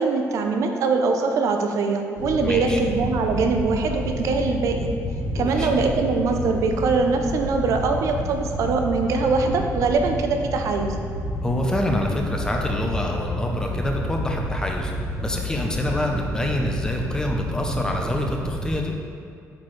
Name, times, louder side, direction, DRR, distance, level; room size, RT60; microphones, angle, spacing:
voice 1, 0.0-4.9 5.3-11.0, right 4 dB, 60° right, 4 dB, 0.6 m, -22 dB
Wind / Boat Water vehicle, 2.2-18.7, left 1 dB, 55° left, 1.1 m, -29 dB
voice 2, 2.4-2.8 5.4-5.7 11.4-14.9 15.2-18.9, left 1 dB, 10° left, 1 dB, 0.6 m, -26 dB
8.4 x 4.4 x 3.1 m, 2.5 s
cardioid pair, 155°, 6 cm